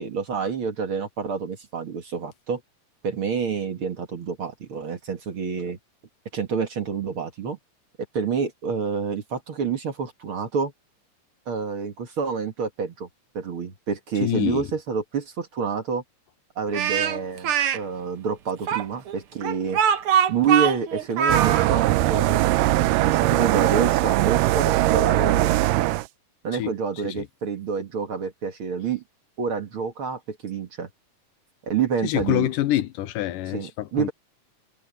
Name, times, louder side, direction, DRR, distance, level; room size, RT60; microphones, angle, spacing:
voice 1, 0.0-2.6 3.0-5.8 6.3-7.6 8.1-10.7 11.5-13.1 13.3-16.0 16.6-19.8 20.3-25.9 26.4-29.0 29.4-30.9 31.7-32.5 33.5-34.1, right 6 dB, 45° right, 2.2 m, -28 dB
voice 2, 14.2-14.7 26.6-26.7 27.0-27.3 32.0-34.1, left 14 dB, 90° left, 2.5 m, -26 dB
Speech, 16.7-17.8 18.7-21.7, right 8 dB, 60° right, 1.5 m, -22 dB
sound 1, 21.3-26.1, right 17 dB, 85° right, 2.3 m, -20 dB
omnidirectional pair, 3.7 m